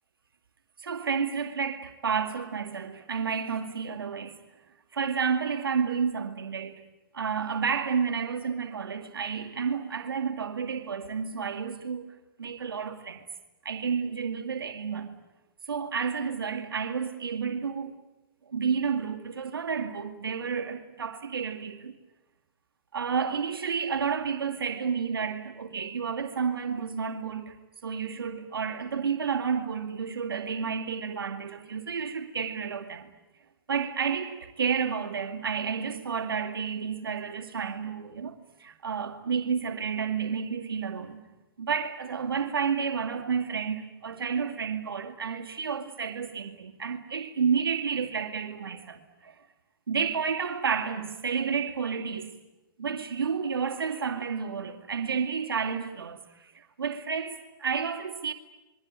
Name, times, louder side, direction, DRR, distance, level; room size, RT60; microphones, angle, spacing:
voice 1, 0.8-4.4 4.9-6.8 7.1-12.1 12.4-13.2 13.6-15.1 15.7-17.9 18.5-21.9 22.9-27.6 27.8-33.1 33.7-41.2 41.6-49.3 49.9-52.3 52.8-58.3, right 6 dB, 90° right, 2.3 m, -31 dB
28.0 x 22.5 x 8.9 m
hypercardioid pair, 130°, 12 cm